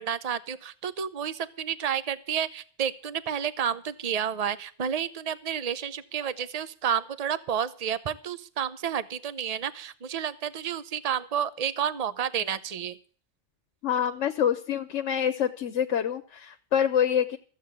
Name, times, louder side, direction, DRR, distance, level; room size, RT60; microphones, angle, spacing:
voice 1, 0.0-13.0, right 8 dB, 35° right, 14 dB, 0.8 m, -30 dB
voice 2, 13.8-17.4, left 9 dB, 85° left, 8 dB, 1.2 m, -26 dB
14.5 x 8.0 x 8.2 m, 0.43 s
omnidirectional pair, 1.2 m